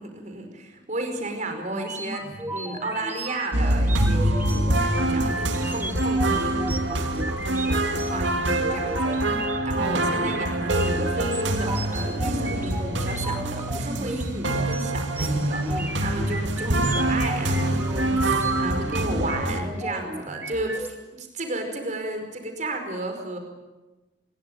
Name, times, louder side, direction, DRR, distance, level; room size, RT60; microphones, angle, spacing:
voice 1, 0.0-23.4, right 2 dB, 40° right, 5 dB, 5.1 m, -33 dB
sound 1, 1.7-20.9, right 1 dB, 10° right, 2.4 m, -35 dB
sound 2, 3.5-19.6, right 1 dB, 75° right, 2.7 m, -25 dB
27.0 x 22.0 x 9.3 m, 1.1 s
head